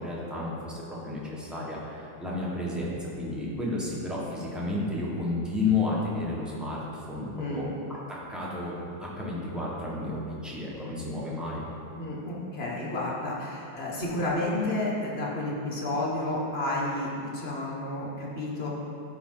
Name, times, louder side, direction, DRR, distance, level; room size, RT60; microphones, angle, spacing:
voice 1, 0.0-7.7 8.1-8.7 9.0-11.6, left 2 dB, ahead, -6 dB, 1.0 m, -32 dB
voice 2, 11.9-18.7, left 1 dB, 35° left, -4 dB, 1.2 m, -31 dB
11.5 x 5.1 x 3.9 m, 2.6 s
omnidirectional pair, 2.3 m